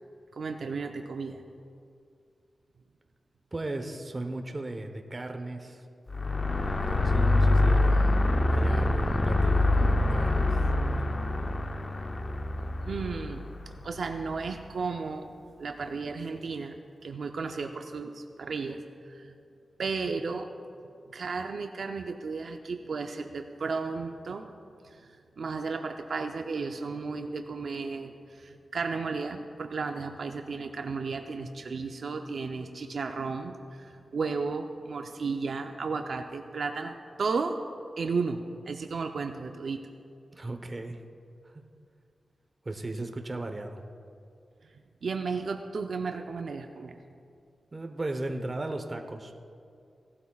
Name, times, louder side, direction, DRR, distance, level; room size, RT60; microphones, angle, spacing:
voice 1, 0.3-1.4 6.3-6.4 12.8-15.3 15.6-16.8 17.0-18.8 19.0-19.3 19.8-20.5 21.1-24.5 24.8-37.5 38.0-39.8 45.0-47.0, right 4 dB, 70° right, 5 dB, 0.5 m, -34 dB
voice 2, 3.5-5.8 6.6-8.2 8.5-10.6 10.9-11.0 40.3-41.0 41.4-41.5 42.6-43.8 47.7-49.3, right 2 dB, 30° right, 5 dB, 0.9 m, -36 dB
sound 1, 6.1-14.4, left 2 dB, 35° left, 0.5 m, -25 dB
17.5 x 12.0 x 2.4 m, 2.4 s
wide cardioid pair, 90°, 0 cm